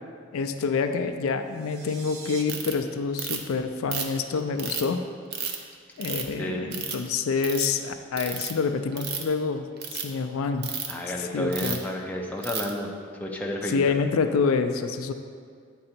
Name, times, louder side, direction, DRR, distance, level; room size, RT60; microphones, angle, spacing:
voice 1, 0.3-5.0 6.0-9.6 10.0-10.7 11.2-11.8 13.7-15.1, left 5 dB, 75° left, 8 dB, 0.4 m, -27 dB
sound 1, 1.4-2.4, right 5 dB, 80° right, 0.7 m, -43 dB
Ratchet pawl, 2.5-2.7 3.2-3.5 3.9-4.9 5.3-5.6 6.0-6.3 6.7-7.1 7.4-7.7 8.2-8.5 8.9-9.3 9.8-10.0 10.6-10.9 11.5-11.8 12.4-12.7, right 6 dB, 50° right, 0.6 m, -32 dB
voice 2, 6.4-6.7 10.9-12.9 13.2-13.8, left 1 dB, 5° left, -1 dB, 0.5 m, -31 dB
8.7 x 3.8 x 4.4 m, 2.1 s
head